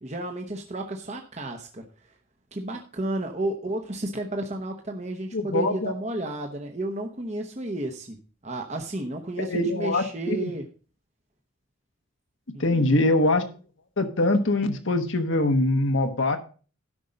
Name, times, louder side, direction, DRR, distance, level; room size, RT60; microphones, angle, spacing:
voice 1, 0.0-2.2 2.5-8.2 8.4-10.6 12.5-13.0, right 1 dB, 35° right, 3 dB, 0.9 m, -32 dB
voice 2, 5.3-5.9 9.4-10.5 12.6-13.4 14.0-16.4, left 2 dB, 65° left, 6 dB, 1.2 m, -23 dB
12.5 x 5.4 x 5.2 m, 0.38 s
head